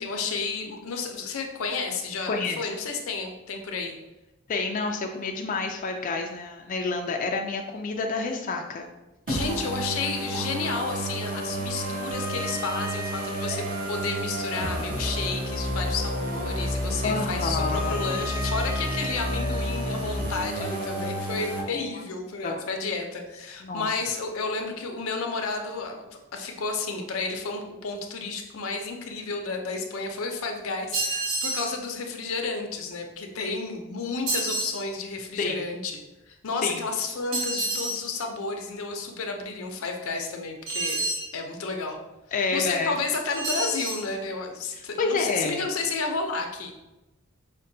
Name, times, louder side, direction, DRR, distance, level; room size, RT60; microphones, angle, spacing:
voice 1, 0.0-4.0 9.3-26.0 26.3-35.9 36.3-41.0 41.3-42.0 42.5-46.7, left 4 dB, 90° left, 4 dB, 0.5 m, -31 dB
voice 2, 2.2-2.6 4.5-8.9 17.0-18.1 21.4-21.9 22.4-22.6 23.6-23.9 35.4-35.6 36.6-36.9 42.3-43.0 45.0-45.6, left 4 dB, 40° left, 2 dB, 0.3 m, -29 dB
sound 1, 9.3-21.6, equal, 45° right, 0.7 m, -30 dB
sound 2, 30.9-31.7 34.3-34.8 37.3-38.0 40.7-41.3 43.3-44.1, right 2 dB, 70° right, 1.2 m, -28 dB
5.1 x 2.2 x 2.6 m, 1.0 s
head